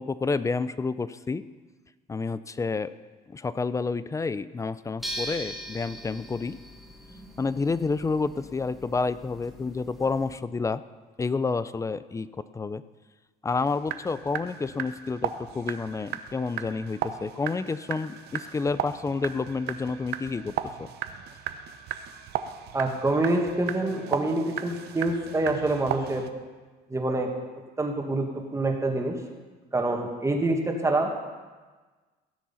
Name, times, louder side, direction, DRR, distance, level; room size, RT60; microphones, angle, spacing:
voice 1, 0.0-1.4 2.1-2.9 3.3-6.6 7.4-10.8 11.2-12.8 13.4-20.9, left 4 dB, 20° left, 15 dB, 0.4 m, -29 dB
sound 1, 5.0-10.4, equal, ahead, 1.7 m, -41 dB
sound 2, 13.5-26.3, right 10 dB, 70° right, 0.8 m, -36 dB
voice 2, 22.7-26.3 26.9-27.3 27.8-29.2 29.7-31.1, right 2 dB, 15° right, 2 dB, 1.8 m, -26 dB
16.5 x 7.6 x 5.7 m, 1.3 s
cardioid pair, 110°, 17 cm